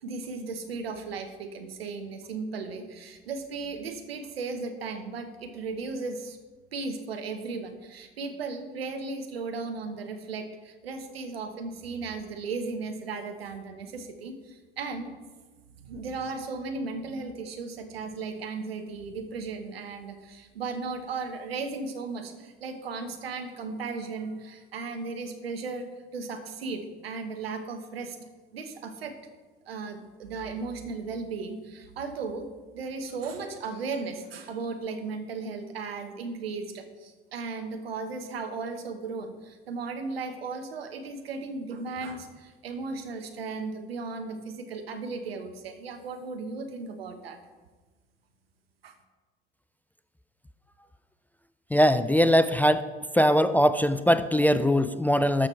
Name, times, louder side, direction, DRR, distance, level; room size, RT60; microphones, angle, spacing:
voice 1, 0.0-6.4 6.7-15.1 15.7-25.9 26.1-28.2 28.5-29.1 29.7-32.5 32.7-47.4 48.8-49.0, right 4 dB, 80° right, 6 dB, 1.1 m, -36 dB
voice 2, 51.7-52.9 53.1-55.5, equal, 5° left, 12 dB, 0.4 m, -21 dB
12.5 x 6.3 x 4.4 m, 1.3 s
figure-of-eight pair, 65°, 30 cm